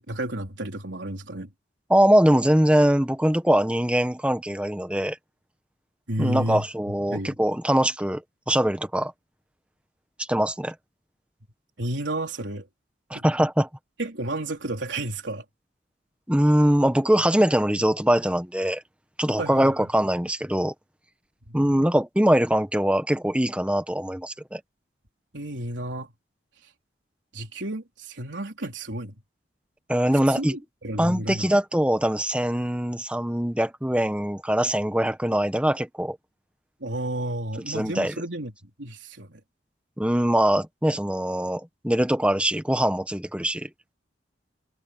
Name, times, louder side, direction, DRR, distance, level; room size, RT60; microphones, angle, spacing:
voice 1, 0.0-1.5 6.1-6.6 7.1-7.4 11.8-12.7 13.1-13.2 14.0-15.4 19.4-19.7 21.5-21.6 25.3-26.1 26.6-26.7 27.3-29.2 30.3-31.5 36.8-38.5 38.8-39.4, right 1 dB, 85° right, 3.7 m, -31 dB
voice 2, 1.9-5.2 6.2-9.1 10.3-10.7 13.1-13.7 16.3-18.8 19.2-20.7 21.5-24.6 29.9-30.6 31.0-36.2 37.7-38.1 40.0-43.7, equal, 5° right, 1.3 m, -22 dB
head